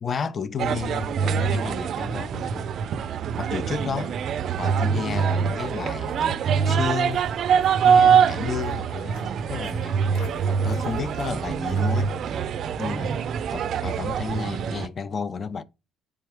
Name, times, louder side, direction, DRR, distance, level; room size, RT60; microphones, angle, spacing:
voice 1, 0.0-2.7 3.4-4.2 4.6-7.3 7.8-12.1 12.8-15.6, left 6 dB, 35° left, 0.3 m, -32 dB
sound 1, 0.6-14.9, right 7 dB, 50° right, 0.4 m, -24 dB
Walk footsteps, 4.1-12.7, left 3 dB, 90° left, 1.3 m, -51 dB
4.5 x 3.4 x 3.3 m
cardioid pair, 125°, 0 cm